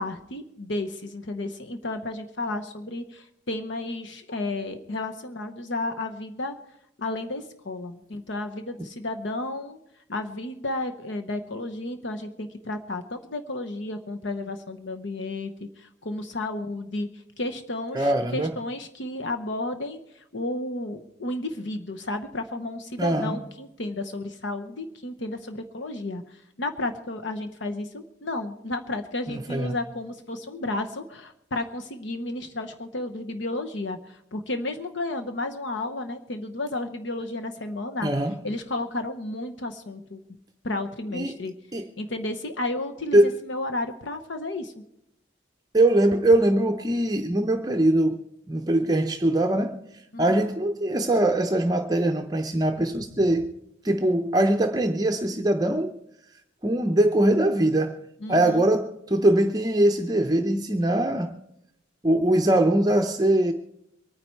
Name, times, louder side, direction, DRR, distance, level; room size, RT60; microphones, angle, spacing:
voice 1, 0.0-6.5 7.0-9.8 10.1-38.1 38.4-40.2 40.6-41.5 42.0-44.7 50.1-50.4 58.2-58.6, left 2 dB, 65° left, 0.9 m, -32 dB
voice 2, 17.9-18.5 23.0-23.4 29.3-29.8 38.0-38.4 41.1-41.4 41.7-41.9 43.1-43.3 45.7-48.2 48.5-49.8 50.2-53.5 53.8-55.9 56.6-58.0 58.3-61.3 62.0-63.5, right 1 dB, 20° right, 0.6 m, -22 dB
23.5 x 9.7 x 4.5 m
head